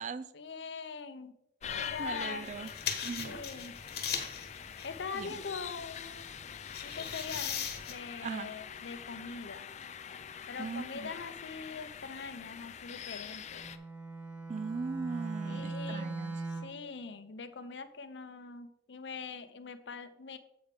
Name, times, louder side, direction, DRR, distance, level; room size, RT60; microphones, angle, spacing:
voice 1, 0.3-1.3 1.7-2.5 3.2-3.8 4.8-6.3 6.8-9.7 10.5-13.7 15.4-16.1 16.5-20.4, left 5 dB, 85° left, 11 dB, 0.6 m, -43 dB
sound 1, 1.6-13.8, left 8 dB, 40° left, 0.4 m, -44 dB
voice 2, 2.0-2.7 3.0-3.4 5.1-5.3 8.2-8.5 10.6-11.1 14.5-16.4, right 4 dB, 40° right, 14 dB, 0.4 m, -39 dB
sound 2, 2.4-7.9, left 7 dB, 60° left, 1.2 m, -40 dB
Bowed string instrument, 13.5-16.9, right 3 dB, 10° right, 1.4 m, -40 dB
7.8 x 5.0 x 5.1 m, 0.79 s
head